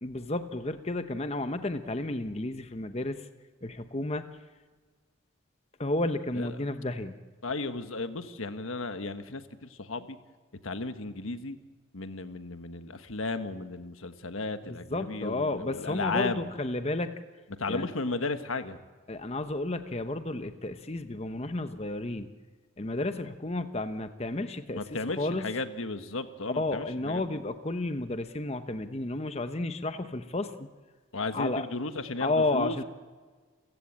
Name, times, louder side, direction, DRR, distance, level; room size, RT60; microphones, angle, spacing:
voice 1, 0.0-3.3 3.6-4.3 5.8-7.2 14.7-17.1 17.7-17.9 19.1-22.3 22.8-24.8 25.2-25.5 26.6-30.5 31.3-31.7 32.2-32.8, left 2 dB, 30° left, 9 dB, 0.9 m, -32 dB
voice 2, 7.4-10.2 10.6-11.6 11.9-16.5 17.6-18.8 24.7-27.4 31.1-32.8, left 3 dB, 85° left, 9 dB, 1.4 m, -34 dB
29.5 x 15.5 x 8.6 m, 1.5 s
head